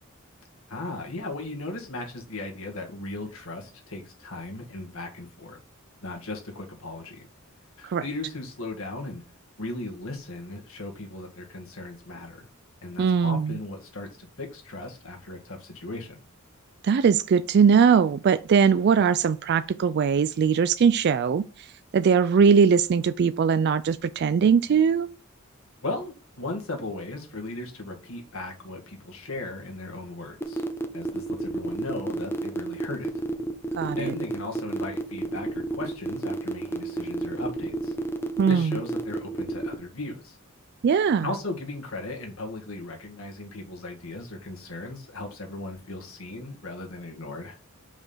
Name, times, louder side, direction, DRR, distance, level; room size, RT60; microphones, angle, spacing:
voice 1, 0.7-5.6 6.0-7.3 7.8-9.2 9.6-12.5 12.8-16.2 25.8-30.6 30.9-33.1 34.0-37.9 38.5-40.4 41.2-47.6, left 2 dB, 75° left, 2.1 m, -37 dB
voice 2, 13.0-13.6 16.8-21.7 21.9-25.1 33.8-34.1 38.4-38.8 40.8-41.3, right 6 dB, 50° right, 0.3 m, -21 dB
sound 1, 30.4-39.7, right 2 dB, 10° left, 0.8 m, -30 dB
5.3 x 4.9 x 5.6 m
head